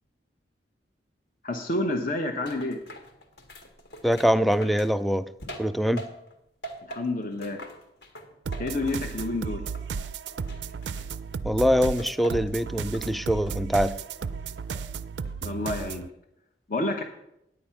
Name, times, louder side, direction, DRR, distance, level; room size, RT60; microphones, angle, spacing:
voice 1, 1.4-2.8 6.9-7.6 8.6-9.6 15.4-16.1 16.7-17.0, left 2 dB, 55° left, 2 dB, 0.9 m, -29 dB
sound 1, 2.5-6.4 6.6-9.4 9.7-11.4 12.0-12.6 12.9-13.6 14.0-14.9 15.3-15.7, right 1 dB, 70° left, 1.7 m, -44 dB
voice 2, 4.0-5.3 5.6-6.1 11.4-14.0, equal, ahead, 14 dB, 0.3 m, -23 dB
sound 2, 8.4-16.1, right 5 dB, 85° right, 0.4 m, -34 dB
9.7 x 8.6 x 5.7 m, 0.82 s
head